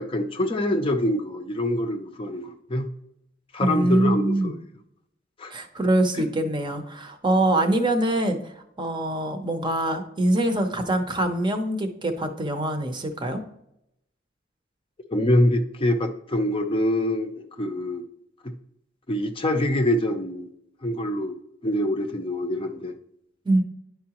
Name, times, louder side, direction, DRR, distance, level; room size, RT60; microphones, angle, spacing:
voice 1, 0.0-2.9 3.5-4.5 5.4-5.5 15.1-18.0 18.4-18.5 19.1-20.5 20.8-21.4 21.6-22.9, left 1 dB, 30° left, 5 dB, 0.6 m, -25 dB
voice 2, 3.6-4.5 5.5-8.4 8.8-13.4 23.5-23.6, right 1 dB, 25° right, 6 dB, 0.7 m, -24 dB
10.0 x 4.7 x 2.9 m, 0.82 s
head